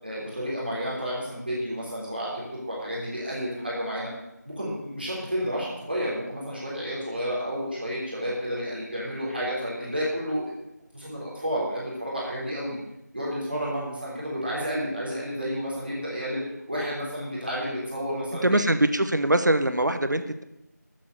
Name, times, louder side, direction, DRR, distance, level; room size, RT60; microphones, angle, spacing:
voice 1, 0.0-2.3 2.7-4.1 4.4-10.5 10.9-12.8 13.1-16.4 16.7-18.7, equal, 30° right, -7 dB, 3.4 m, -31 dB
voice 2, 13.5-13.9 18.4-20.4, right 1 dB, 75° right, 9 dB, 1.1 m, -23 dB
13.0 x 7.5 x 6.8 m, 0.88 s
figure-of-eight pair, 180°, 10 cm